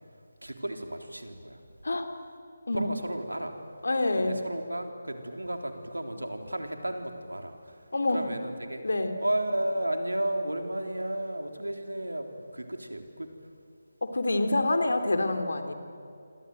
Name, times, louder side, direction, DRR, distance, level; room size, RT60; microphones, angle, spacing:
voice 1, 0.0-1.6 2.7-3.6 4.1-8.8 9.2-13.5, right 1 dB, 85° right, 5 dB, 3.7 m, -33 dB
voice 2, 3.8-4.4 7.9-8.2 8.8-9.1 14.0-15.7, left 2 dB, 65° left, 7 dB, 3.3 m, -26 dB
27.5 x 26.5 x 7.9 m, 2.4 s
figure-of-eight pair, 155°, 0 cm